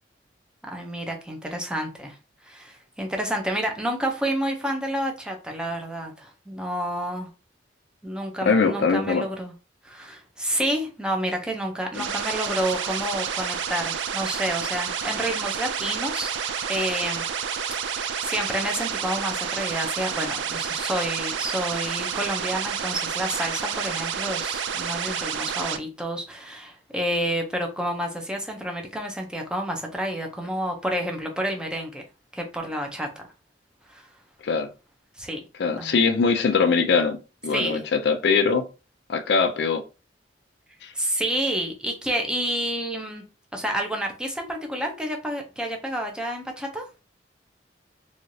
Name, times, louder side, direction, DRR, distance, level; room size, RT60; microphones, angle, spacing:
voice 1, 0.6-2.2 2.4-7.3 8.0-9.5 9.8-16.3 16.7-17.7 18.2-32.0 32.3-33.1 33.9-34.1 35.2-35.4 35.7-36.0 37.5-37.8 40.9-43.2 43.5-46.9, right 1 dB, 5° right, 0.5 m, -29 dB
voice 2, 8.4-9.3 12.0-12.1 34.4-34.7 35.6-37.2 37.4-38.6 39.1-39.8 40.8-40.9, left 5 dB, 65° left, 0.4 m, -22 dB
sound 1, 11.9-25.8, right 7 dB, 90° right, 0.4 m, -29 dB
3.1 x 2.4 x 2.6 m
head